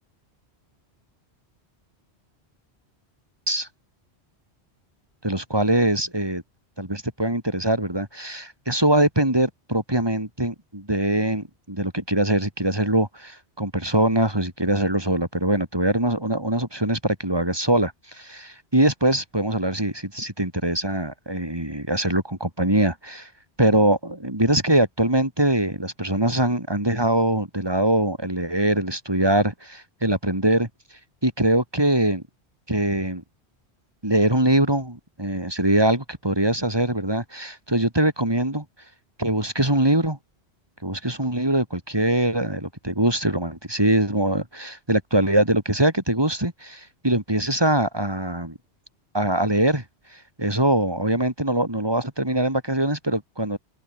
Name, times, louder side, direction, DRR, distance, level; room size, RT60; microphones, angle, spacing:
voice 1, 5.2-6.4 6.8-23.3 23.6-30.7 31.2-32.2 32.7-33.2 34.0-38.6 39.2-40.2 40.8-48.6 49.1-49.8 50.4-53.6, right 1 dB, 20° right, 4.3 m, -23 dB
omnidirectional pair, 1.1 m